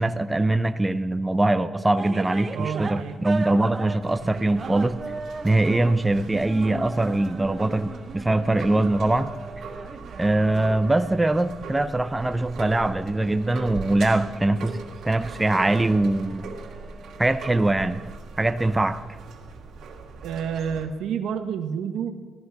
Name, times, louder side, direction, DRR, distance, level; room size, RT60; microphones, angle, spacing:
voice 1, 0.0-5.0 5.4-9.3 10.2-16.5 17.2-18.0 18.4-19.0, right 2 dB, 15° right, 10 dB, 0.5 m, -22 dB
sound 1, 2.0-18.1, right 3 dB, 30° right, 0.9 m, -39 dB
voice 2, 2.5-3.1 20.2-22.1, right 7 dB, 85° right, 8 dB, 1.1 m, -29 dB
sound 2, 4.0-20.8, right 4 dB, 70° right, 2.1 m, -40 dB
16.0 x 13.5 x 4.7 m, 1.4 s
cardioid pair, 100°, 0 cm